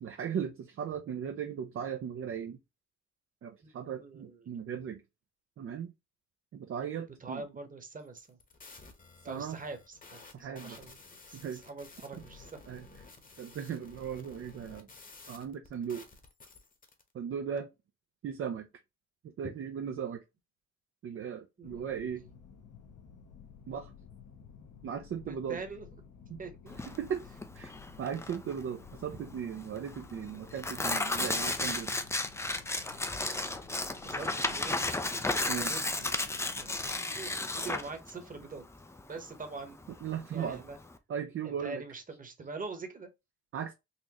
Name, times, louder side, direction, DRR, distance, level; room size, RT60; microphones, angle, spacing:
voice 1, 0.0-2.6 3.4-5.0 5.6-5.9 6.5-7.4 9.3-9.6 10.3-10.8 11.3-11.6 12.1-12.2 12.7-12.9 13.4-14.9 15.3-16.1 17.1-17.7 18.2-18.7 19.2-20.2 21.0-22.2 23.7-23.9 24.8-25.6 26.3-26.4 26.9-27.2 27.5-27.7 28.0-31.9 35.5-35.7 40.0-40.6 41.1-41.8 43.5-43.7, right 8 dB, 45° right, 0.6 m, -37 dB
voice 2, 3.9-4.6 7.0-8.4 9.2-10.2 10.5-12.6 21.6-21.7 25.3-25.9 26.4-26.8 34.0-34.9 35.4-36.3 36.6-38.6 39.1-39.8 40.3-40.8 41.4-43.1, right 3 dB, 25° right, 1.1 m, -44 dB
sound 1, 8.1-17.0, left 3 dB, 30° left, 1.1 m, -53 dB
sound 2, 21.6-37.0, left 7 dB, 65° left, 1.0 m, -54 dB
Tearing, 26.7-41.0, left 2 dB, 10° left, 0.4 m, -34 dB
4.2 x 2.5 x 2.9 m
cardioid pair, 90°, 30 cm